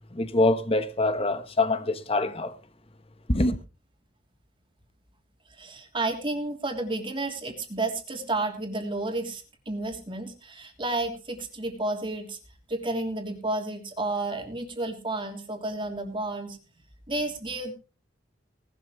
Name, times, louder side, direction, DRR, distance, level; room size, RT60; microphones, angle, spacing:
voice 1, 0.1-2.6 3.3-3.6, left 2 dB, 30° left, 1.2 m, -24 dB
voice 2, 5.5-12.4 12.7-16.6 17.1-17.7, right 2 dB, 25° right, 3.1 m, -31 dB
19.0 x 12.5 x 3.2 m
head